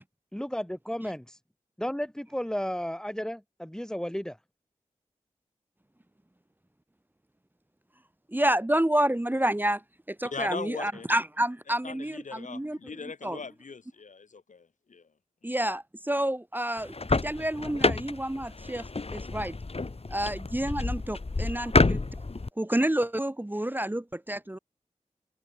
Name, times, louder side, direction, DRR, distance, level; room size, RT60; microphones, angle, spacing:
voice 1, 0.3-1.3 1.8-4.4, equal, 5° left, 2.5 m, -33 dB
voice 2, 8.3-9.8 10.1-12.8 13.2-13.4 15.4-19.6 20.1-22.0 22.6-24.6, right 1 dB, 15° right, 1.2 m, -29 dB
voice 3, 10.2-11.1 11.8-15.1, left 5 dB, 85° left, 3.3 m, -40 dB
sound 1, 16.8-22.5, left 3 dB, 50° left, 3.7 m, -29 dB
cardioid pair, 45°, 13 cm